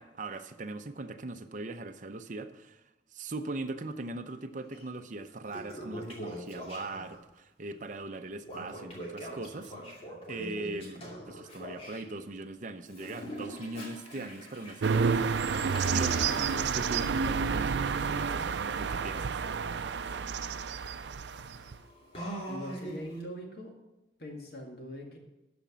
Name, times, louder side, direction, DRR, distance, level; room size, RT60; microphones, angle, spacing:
voice 1, 0.0-2.8 3.1-15.4 15.8-19.3, right 2 dB, 45° right, 7 dB, 0.7 m, -40 dB
Toilet flush, 4.7-4.8 5.3-7.2 8.4-12.0 12.9-23.2, equal, 35° left, 2.5 m, -43 dB
sound 1, 14.8-21.8, right 5 dB, 75° right, 0.5 m, -30 dB
voice 2, 22.5-23.7 24.2-25.2, equal, 60° left, 1 dB, 2.1 m, -42 dB
12.5 x 5.1 x 7.4 m, 0.95 s
head